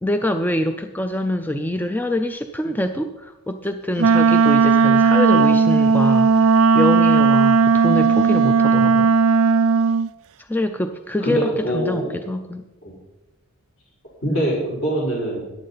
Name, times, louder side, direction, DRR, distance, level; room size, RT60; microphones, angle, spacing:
voice 1, 0.0-9.1 10.4-12.6 14.3-14.5, left 1 dB, 10° left, 7 dB, 0.4 m, -25 dB
Wind instrument woodwind instrument, 4.0-10.1, right 5 dB, 65° right, 0.3 m, -15 dB
voice 2, 11.2-12.1 12.8-12.9 14.2-15.4, right 1 dB, 60° left, -5 dB, 4.0 m, -23 dB
14.0 x 10.0 x 4.1 m, 1.0 s
head